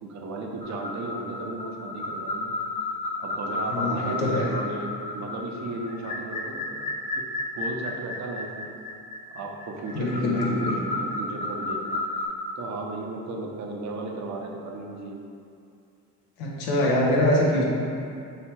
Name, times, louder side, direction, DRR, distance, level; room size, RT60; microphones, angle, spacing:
voice 1, 0.0-2.5 3.2-6.9 7.1-7.2 7.5-8.7 9.3-12.0 12.6-15.2, right 2 dB, 35° right, 0 dB, 0.7 m, -35 dB
sound 1, 0.6-12.3, left 2 dB, 15° left, 0.6 m, -32 dB
voice 2, 3.7-4.5 9.9-10.8 16.4-17.6, left 1 dB, 75° left, -3 dB, 0.9 m, -24 dB
3.3 x 2.9 x 4.4 m, 2.5 s
hypercardioid pair, 60°, 47 cm